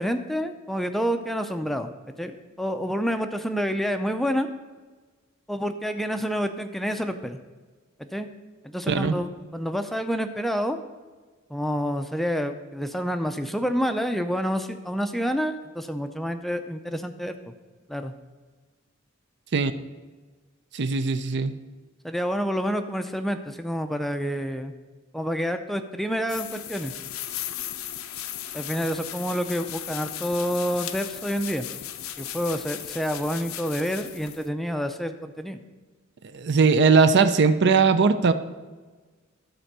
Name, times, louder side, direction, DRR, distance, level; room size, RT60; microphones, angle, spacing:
voice 1, 0.0-1.9 2.2-2.3 2.6-4.5 5.5-7.4 8.0-8.3 8.6-10.8 11.5-17.5 17.9-18.1 22.0-24.7 25.1-26.9 28.5-31.7 32.2-35.6, equal, ahead, 7 dB, 0.5 m, -28 dB
voice 2, 20.7-21.6 36.3-38.3, right 4 dB, 55° right, 11 dB, 0.5 m, -19 dB
sound 1, 26.3-34.5, left 11 dB, 80° left, 0.6 m, -36 dB
13.0 x 4.4 x 6.6 m, 1.3 s
head